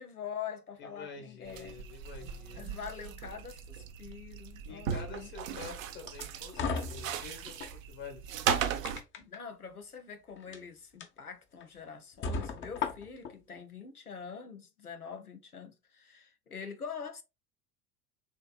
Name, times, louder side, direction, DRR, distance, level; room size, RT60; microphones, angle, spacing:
voice 1, 0.0-1.9 2.5-5.8 7.2-7.3 9.2-17.2, left 7 dB, 90° left, 0.8 m, -44 dB
voice 2, 0.8-2.6 4.6-8.5, left 5 dB, 45° left, 1.3 m, -47 dB
sound 1, 1.5-9.0, right 9 dB, 65° right, 0.7 m, -37 dB
sound 2, 6.1-7.7 8.3-9.4 10.4-10.6 11.0-11.1 11.6-11.7 12.2-13.3, left 5 dB, 25° left, 0.8 m, -36 dB
7.0 x 2.9 x 2.3 m
figure-of-eight pair, 75°, 43 cm